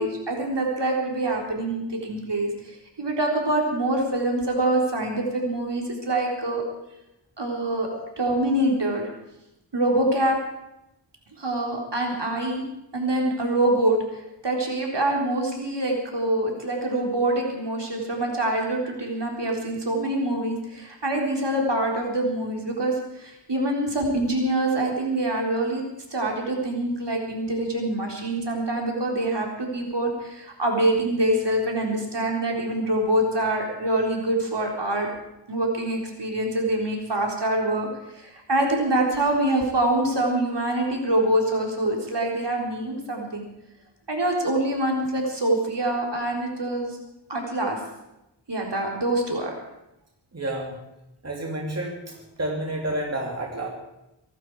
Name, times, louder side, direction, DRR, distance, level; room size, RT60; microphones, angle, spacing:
voice 1, 0.0-6.6 7.4-7.9 8.2-9.1 9.7-10.4 11.4-12.6 12.9-25.8 26.1-35.1 35.5-37.9 38.1-43.5 44.1-47.0 47.3-47.8 48.5-49.5, right 1 dB, 60° right, 0 dB, 4.0 m, -25 dB
voice 2, 50.3-50.8 51.2-53.7, right 1 dB, 35° right, 0 dB, 2.8 m, -30 dB
24.0 x 12.0 x 4.8 m, 0.90 s
wide cardioid pair, 60°, 46 cm